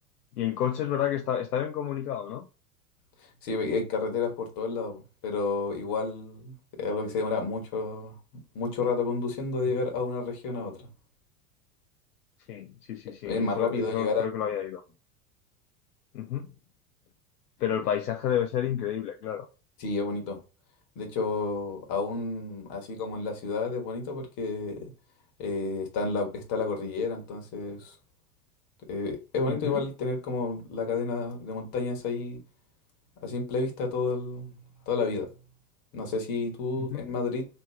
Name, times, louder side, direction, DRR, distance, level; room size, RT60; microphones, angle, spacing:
voice 1, 0.4-2.5 12.5-14.8 16.1-16.5 17.6-19.5 29.5-29.8 36.8-37.0, left 10 dB, 80° left, 0.6 m, -30 dB
voice 2, 3.4-8.1 8.5-10.8 13.2-14.2 19.8-20.4 20.9-24.9 25.4-27.9 28.9-32.4 33.2-34.6 34.9-35.3 35.9-37.5, left 4 dB, 50° left, 1.5 m, -30 dB
3.1 x 3.0 x 3.2 m
hypercardioid pair, 80°, 46 cm